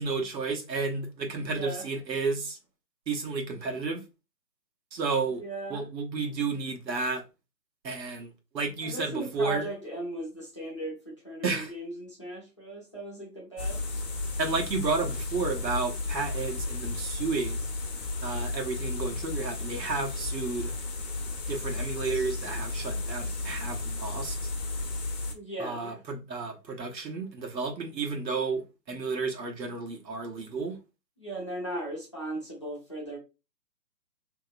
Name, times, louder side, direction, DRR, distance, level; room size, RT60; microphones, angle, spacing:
voice 1, 0.0-2.6 3.1-4.0 4.9-5.4 5.7-7.2 7.8-9.6 11.4-11.7 14.4-17.6 18.2-20.7 21.5-24.5 25.6-30.8, right 4 dB, 85° right, 1.0 m, -32 dB
voice 2, 1.4-1.9 5.4-5.8 8.8-13.8 25.3-26.0 31.2-33.2, right 1 dB, 20° left, 0.5 m, -37 dB
sound 1, 13.6-25.3, left 2 dB, 65° left, 0.9 m, -33 dB
2.8 x 2.8 x 2.4 m
hypercardioid pair, 150°, 49 cm